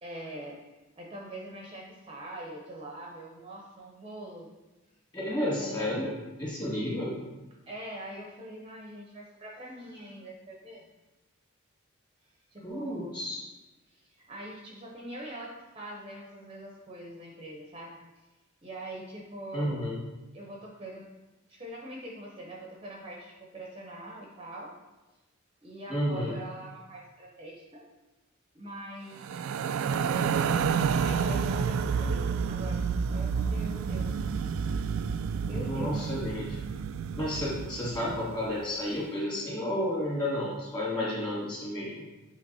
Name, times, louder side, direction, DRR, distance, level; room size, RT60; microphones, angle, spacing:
voice 1, 0.0-0.6 1.0-4.5 5.3-5.9 7.7-10.8 12.5-13.2 13.9-18.0 18.6-19.8 20.3-21.1 21.5-24.7 25.6-27.8 28.5-30.2 31.0-32.8 33.1-34.2 35.5-35.9 40.9-41.1, right 1 dB, 25° right, -2 dB, 0.7 m, -43 dB
voice 2, 5.1-7.1 12.6-13.4 19.5-20.0 25.9-26.3 35.5-36.6 37.2-42.1, left 1 dB, 20° left, -5 dB, 2.1 m, -31 dB
sound 1, 29.2-38.5, right 6 dB, 80° right, 0.3 m, -30 dB
8.1 x 3.1 x 4.1 m, 1.1 s
head